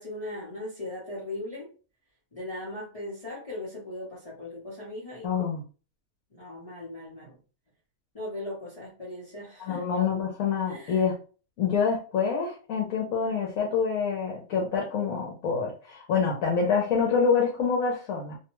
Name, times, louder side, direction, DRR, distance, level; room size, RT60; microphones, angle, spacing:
voice 1, 0.0-1.7 2.3-5.3 6.3-7.4 8.1-9.9 10.6-11.0, left 1 dB, 30° left, -7 dB, 0.9 m, -38 dB
voice 2, 5.2-5.6 9.6-11.1 11.6-18.4, left 6 dB, 75° left, -2 dB, 1.1 m, -26 dB
2.8 x 2.3 x 3.0 m, 0.36 s
omnidirectional pair, 1.5 m